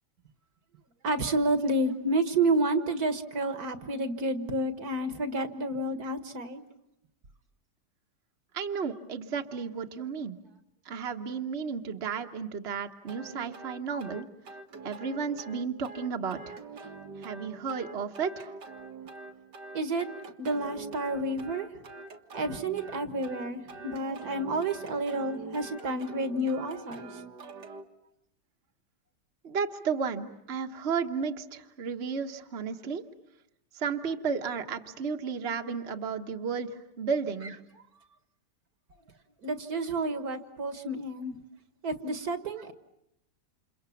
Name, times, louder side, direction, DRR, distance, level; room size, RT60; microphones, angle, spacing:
voice 1, 1.0-6.6 19.7-20.1 20.4-21.7 22.3-27.2 39.4-41.4 41.8-42.7, right 2 dB, 65° right, 9 dB, 2.0 m, -30 dB
voice 2, 8.5-10.4 10.9-14.3 14.8-16.5 17.2-18.5 29.4-33.0 33.7-36.7 37.0-37.5, right 6 dB, 40° right, 4 dB, 1.4 m, -33 dB
sound 1, 13.1-27.8, right 3 dB, 80° right, 2.3 m, -45 dB
29.5 x 28.0 x 7.1 m, 0.82 s
omnidirectional pair, 1.8 m